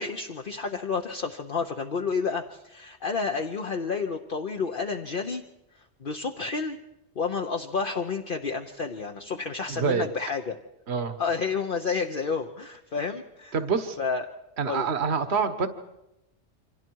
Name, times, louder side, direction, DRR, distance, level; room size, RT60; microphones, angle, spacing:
voice 1, 0.0-5.4 6.0-6.8 7.2-10.6 11.2-13.5 14.0-14.3 14.6-14.9, left 5 dB, 50° left, 4 dB, 1.1 m, -30 dB
voice 2, 9.7-10.1 10.9-11.2 13.5-14.0 14.6-15.7, right 5 dB, 65° right, 9 dB, 1.5 m, -26 dB
28.5 x 25.5 x 4.7 m, 0.91 s
omnidirectional pair, 1.2 m